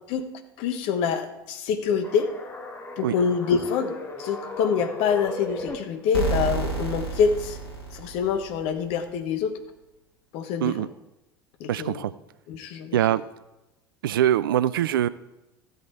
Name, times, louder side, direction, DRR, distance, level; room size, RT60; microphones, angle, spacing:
voice 1, 0.6-2.3 3.0-3.9 4.2-7.6 7.9-9.5 10.3-10.9 11.6-12.0 12.5-13.0, left 6 dB, 50° left, 8 dB, 1.2 m, -26 dB
sound 1, 1.9-5.8, left 2 dB, 20° left, 1.8 m, -37 dB
sound 2, 6.1-8.9, right 4 dB, 80° left, 2.0 m, -30 dB
voice 2, 11.7-12.1 12.9-13.2 14.0-15.1, right 11 dB, 65° right, 18 dB, 0.4 m, -23 dB
15.0 x 8.0 x 3.5 m, 0.97 s
figure-of-eight pair, 70°, 12 cm